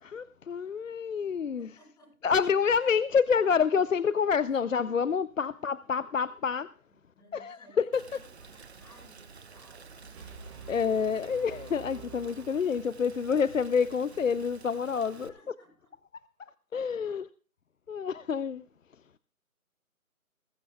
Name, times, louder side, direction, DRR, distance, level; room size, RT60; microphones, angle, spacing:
voice 1, 0.0-1.7 2.2-6.7 7.3-7.9 10.7-15.3 16.7-17.3 17.9-18.6, left 6 dB, 60° left, 0.6 m, -28 dB
voice 2, 1.4-2.3 7.1-7.8 8.1-10.2 15.1-15.9 17.0-17.2, equal, 10° left, 5.3 m, -59 dB
Rain, 7.9-15.3, right 5 dB, 45° right, 1.0 m, -51 dB
Brass instrument, 10.1-13.2, right 5 dB, 20° right, 3.9 m, -48 dB
21.0 x 12.5 x 2.3 m
figure-of-eight pair, 160°, 43 cm